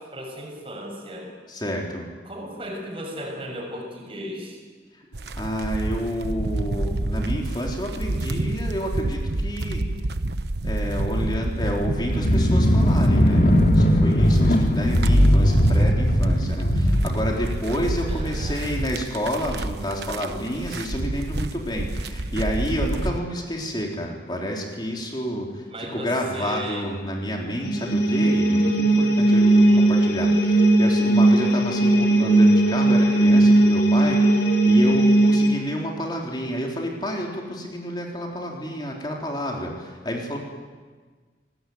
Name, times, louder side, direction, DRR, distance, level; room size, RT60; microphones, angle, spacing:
voice 1, 0.0-1.3 2.3-4.6 18.1-18.7 25.7-26.9 29.5-29.9, equal, 30° right, 1 dB, 6.9 m, -36 dB
voice 2, 1.5-2.1 5.3-9.8 10.6-40.4, equal, 25° left, 0 dB, 3.8 m, -29 dB
sound 1, 5.1-23.2, right 2 dB, 70° right, 1.1 m, -28 dB
sound 2, 12.1-18.1, equal, 50° left, 2.3 m, -19 dB
sound 3, 27.6-35.5, right 1 dB, 85° left, 4.6 m, -17 dB
26.0 x 20.0 x 9.3 m, 1.5 s
head